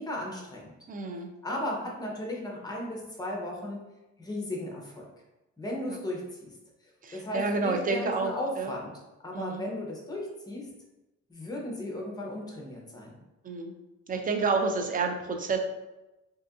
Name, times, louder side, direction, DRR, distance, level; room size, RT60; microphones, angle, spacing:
voice 1, 0.0-0.7 1.4-3.8 4.2-5.1 5.6-6.6 6.8-8.9 9.2-10.7 11.3-13.2, left 1 dB, 15° left, -1 dB, 0.7 m, -36 dB
voice 2, 0.9-1.3 5.9-6.0 7.0-8.7 9.3-9.6 13.4-13.7 14.1-15.6, right 4 dB, 30° right, 4 dB, 0.4 m, -29 dB
2.7 x 2.5 x 2.3 m, 1.0 s
cardioid pair, 90°, 30 cm